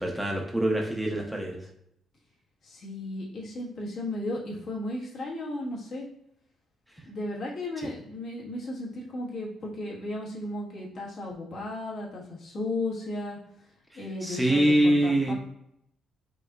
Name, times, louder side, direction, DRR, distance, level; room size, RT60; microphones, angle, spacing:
voice 1, 0.0-1.6 14.2-15.3, right 1 dB, 5° right, 0 dB, 0.7 m, -24 dB
voice 2, 2.6-6.1 7.0-13.4 13.9-15.3, left 2 dB, 60° left, -4 dB, 1.4 m, -35 dB
5.3 x 2.8 x 2.4 m, 0.75 s
cardioid pair, 90°, 0 cm